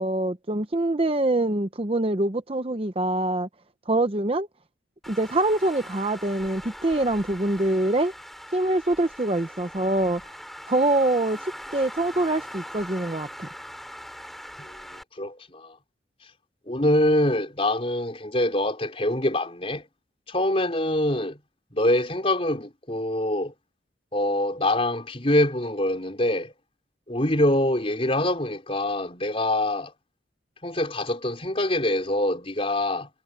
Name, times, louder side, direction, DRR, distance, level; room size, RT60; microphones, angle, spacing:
voice 1, 0.0-3.5 3.9-4.5 5.1-8.1 8.5-10.2 10.7-11.4 11.7-13.5, right 2 dB, 30° right, 0.8 m, -24 dB
Traffic noise roadway noise, 5.0-15.0, equal, ahead, 4.3 m, -41 dB
voice 2, 15.2-15.7 16.7-19.8 20.3-21.4 21.7-23.5 24.1-26.5 27.1-29.9 30.6-33.1, left 1 dB, 30° left, 4.3 m, -24 dB
head